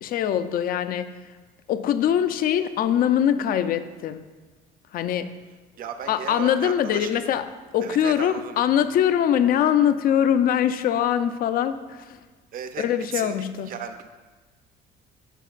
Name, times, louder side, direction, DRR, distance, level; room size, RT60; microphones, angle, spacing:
voice 1, 0.0-1.1 1.7-4.3 4.9-5.3 6.1-12.2 12.8-13.7, left 9 dB, 60° left, 11 dB, 0.5 m, -23 dB
voice 2, 5.8-7.3 7.8-8.6 12.5-12.8 13.1-13.3 13.7-14.0, right 7 dB, 55° right, 8 dB, 0.6 m, -35 dB
12.0 x 4.5 x 2.4 m, 1.3 s
cardioid pair, 110°, 17 cm